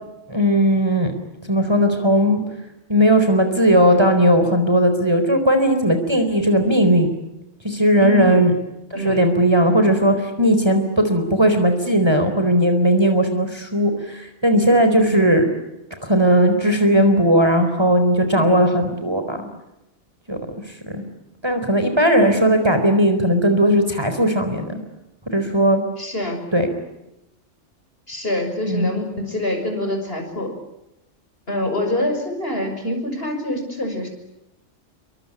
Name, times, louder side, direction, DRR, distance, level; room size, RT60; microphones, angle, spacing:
voice 1, 0.3-1.1 1.5-2.4 2.9-7.1 7.6-8.5 9.0-15.5 16.0-19.5 20.3-20.4 20.9-21.0 21.4-24.8 25.3-25.8 26.5-26.7 28.7-28.9, equal, 20° right, 7 dB, 4.2 m, -17 dB
voice 2, 8.0-8.5 8.9-9.3 15.1-15.3 18.4-18.6 26.0-26.5 28.1-30.5 31.5-34.1, left 1 dB, 50° left, 5 dB, 6.4 m, -25 dB
28.0 x 24.5 x 8.7 m, 0.92 s
omnidirectional pair, 1.3 m